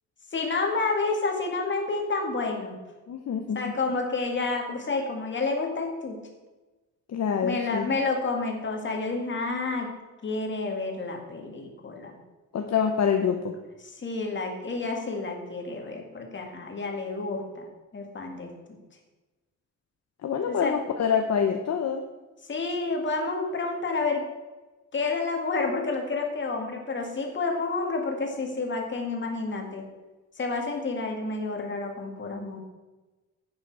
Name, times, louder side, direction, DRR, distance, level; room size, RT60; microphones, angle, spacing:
voice 1, 0.3-2.7 3.5-6.2 7.4-9.9 10.2-12.2 13.8-17.7 17.9-18.5 20.5-20.7 22.5-24.2 24.9-29.8 30.4-32.6, left 3 dB, 35° left, 2 dB, 2.0 m, -29 dB
voice 2, 3.1-3.7 7.1-7.9 12.5-13.5 20.2-22.0, left 7 dB, 55° left, 4 dB, 0.9 m, -26 dB
10.5 x 8.9 x 4.7 m, 1.2 s
wide cardioid pair, 175°, 31 cm